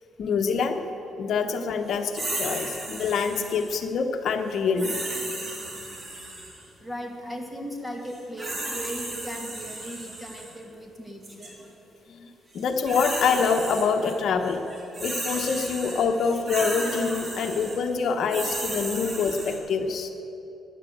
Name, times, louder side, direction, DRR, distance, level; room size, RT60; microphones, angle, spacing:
voice 1, 0.2-0.8 1.2-5.0 12.1-12.3 12.5-14.6 15.0-20.1, left 5 dB, 65° left, 6 dB, 1.0 m, -25 dB
sound 1, 2.1-3.7 4.8-6.6 8.1-10.5 11.2-11.5 12.5-14.1 14.4-19.6, right 2 dB, 35° right, 3.5 m, -34 dB
voice 2, 6.8-11.6, equal, 5° right, 2 dB, 2.2 m, -37 dB
14.0 x 10.0 x 7.9 m, 3.0 s
cardioid pair, 90°, 0 cm